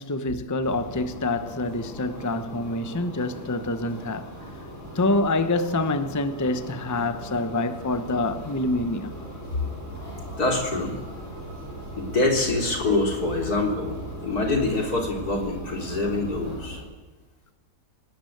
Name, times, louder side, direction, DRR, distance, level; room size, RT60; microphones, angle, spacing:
voice 1, 0.0-4.3 4.9-9.2, left 2 dB, 15° left, 0.8 m, -26 dB
sound 1, 0.6-16.8, right 1 dB, 50° left, 5.9 m, -39 dB
voice 2, 10.4-11.0 12.0-16.8, left 2 dB, 80° left, 4.1 m, -25 dB
26.5 x 19.0 x 7.9 m
omnidirectional pair, 1.6 m